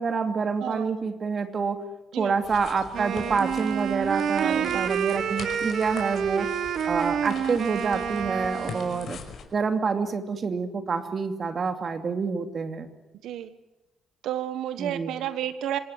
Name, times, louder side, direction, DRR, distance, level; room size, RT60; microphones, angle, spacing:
voice 1, 0.0-1.8 2.2-6.5 6.9-9.2 9.5-12.9 14.8-15.1, right 5 dB, 45° right, 8 dB, 2.7 m, -27 dB
voice 2, 0.6-0.9 2.1-2.3 4.4-4.9 13.2-13.5 14.2-15.8, right 11 dB, 80° right, 12 dB, 1.4 m, -31 dB
sound 1, 2.4-9.4, left 6 dB, 60° left, 5.3 m, -42 dB
Wind instrument woodwind instrument, 2.9-9.1, right 8 dB, 65° right, 1.5 m, -29 dB
26.0 x 18.5 x 9.8 m, 0.98 s
cardioid pair, 90°, 0 cm